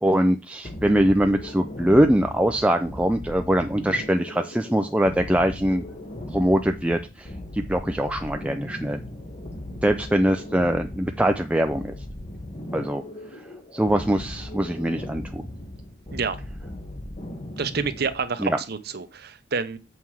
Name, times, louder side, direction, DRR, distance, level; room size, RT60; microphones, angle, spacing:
voice 1, 0.0-5.8 6.3-9.0 9.8-11.9 12.7-13.0 13.7-15.4 18.4-18.6, right 1 dB, 5° right, 5 dB, 0.5 m, -22 dB
sound 1, 0.6-18.3, left 1 dB, 35° left, 1.3 m, -38 dB
voice 2, 17.6-19.8, right 5 dB, 60° right, 12 dB, 0.8 m, -28 dB
7.3 x 5.6 x 4.7 m, 0.30 s
head